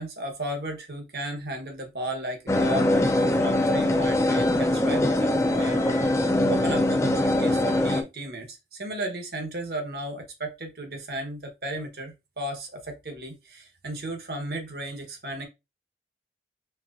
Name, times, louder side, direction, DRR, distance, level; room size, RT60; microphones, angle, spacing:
voice 1, 0.0-6.1 6.5-15.5, right 1 dB, 60° right, 1.2 m, -35 dB
sound 1, 2.5-8.0, left 1 dB, 15° left, 0.4 m, -22 dB
4.5 x 3.7 x 2.6 m
head